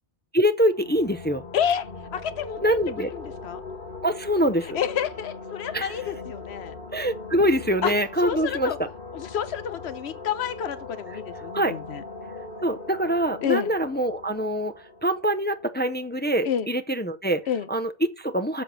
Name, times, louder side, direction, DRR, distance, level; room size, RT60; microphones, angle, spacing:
voice 1, 0.3-1.4 2.6-3.1 4.0-4.8 5.7-6.0 6.9-8.7 11.5-11.7 12.6-14.7 15.0-18.6, equal, 15° left, 0.4 m, -24 dB
sound 1, 0.7-16.2, left 3 dB, 55° left, 1.5 m, -40 dB
voice 2, 1.5-3.6 4.7-6.7 7.8-7.9 8.2-8.8 9.1-12.0 13.4-13.7 16.4-16.7 17.5-17.7, left 8 dB, 85° left, 1.0 m, -29 dB
7.5 x 6.8 x 6.2 m
omnidirectional pair, 1.1 m